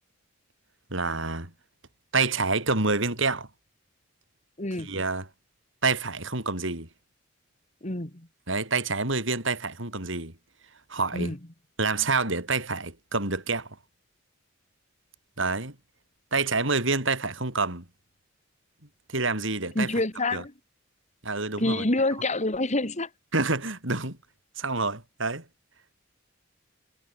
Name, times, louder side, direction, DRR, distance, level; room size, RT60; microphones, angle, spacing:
voice 1, 0.9-1.5 2.1-3.5 4.8-5.3 5.8-6.9 8.5-10.3 10.9-11.3 11.8-13.8 15.4-15.7 16.3-17.8 19.1-19.9 20.3-20.4 21.2-21.8 23.3-24.2 24.6-25.4, right 3 dB, 65° right, 6.3 m, -27 dB
voice 2, 4.6-4.9 7.8-8.3 11.1-11.4 19.7-20.5 21.6-23.1, left 2 dB, 35° left, 2.7 m, -27 dB
head